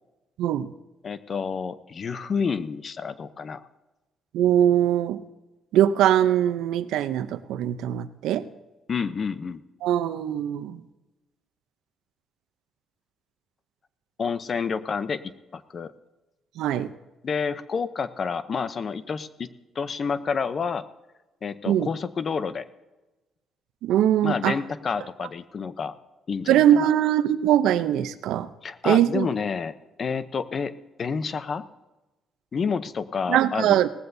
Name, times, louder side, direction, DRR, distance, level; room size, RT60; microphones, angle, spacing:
voice 1, 1.0-3.6 8.9-9.6 14.2-15.9 17.2-19.5 19.7-20.8 21.4-22.7 24.2-25.9 26.3-26.9 28.6-31.6 32.5-33.8, left 5 dB, 45° left, 14 dB, 0.7 m, -29 dB
voice 2, 4.3-5.2 5.7-8.5 9.8-10.8 16.6-16.9 21.7-21.9 23.8-24.6 26.5-28.5 28.8-29.3 33.3-33.9, right 11 dB, 90° right, 12 dB, 0.6 m, -21 dB
18.0 x 14.5 x 2.7 m, 1.1 s
cardioid pair, 90°, 0 cm